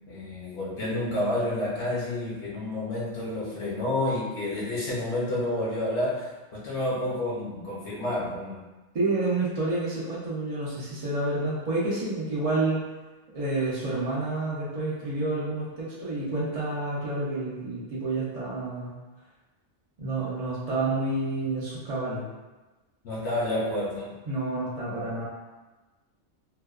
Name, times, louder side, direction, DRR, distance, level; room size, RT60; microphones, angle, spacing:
voice 1, 0.1-8.6 23.0-24.1, left 1 dB, 70° left, -7 dB, 0.9 m, -29 dB
voice 2, 8.9-12.8 13.3-19.0 20.0-22.3 24.3-25.2, right 2 dB, 60° right, -8 dB, 0.3 m, -29 dB
2.6 x 2.1 x 2.3 m, 1.2 s
omnidirectional pair, 1.3 m